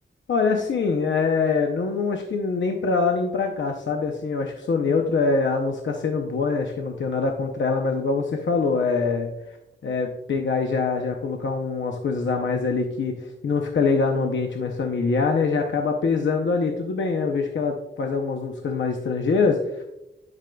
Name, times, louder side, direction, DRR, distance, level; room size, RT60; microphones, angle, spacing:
voice 1, 0.3-9.3 9.8-19.9, left 4 dB, 65° left, 3 dB, 0.7 m, -24 dB
11.0 x 5.1 x 2.2 m, 0.91 s
wide cardioid pair, 165°, 21 cm